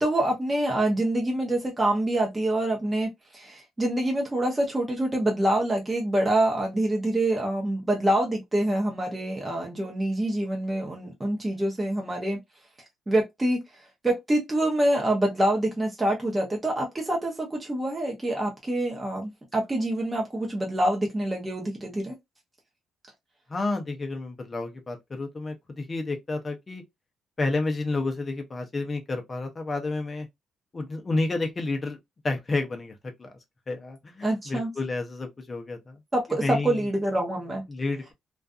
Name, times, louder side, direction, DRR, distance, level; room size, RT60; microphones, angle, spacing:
voice 1, 0.0-12.4 13.1-22.2 34.2-34.7 36.1-37.6, right 1 dB, 15° right, 0.7 m, -26 dB
voice 2, 23.5-26.8 27.4-30.3 30.7-32.0 32.2-33.3 33.7-36.0 36.4-36.8 37.7-38.1, left 3 dB, 25° left, 0.6 m, -30 dB
2.5 x 2.3 x 2.4 m
cardioid pair, 135°, 0 cm